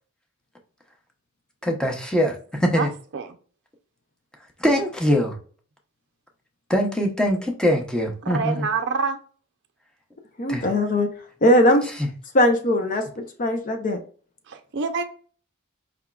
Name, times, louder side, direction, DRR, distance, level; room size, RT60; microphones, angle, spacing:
voice 1, 1.6-2.9 4.6-5.3 6.7-8.7 10.5-10.7 12.0-12.1, equal, 5° left, 1 dB, 0.8 m, -22 dB
voice 2, 8.2-9.2 14.5-15.0, right 5 dB, 55° right, 6 dB, 0.5 m, -26 dB
voice 3, 10.4-11.1 11.4-11.9 12.3-14.0, left 1 dB, 40° left, 5 dB, 0.6 m, -20 dB
4.9 x 3.5 x 2.3 m, 0.41 s
head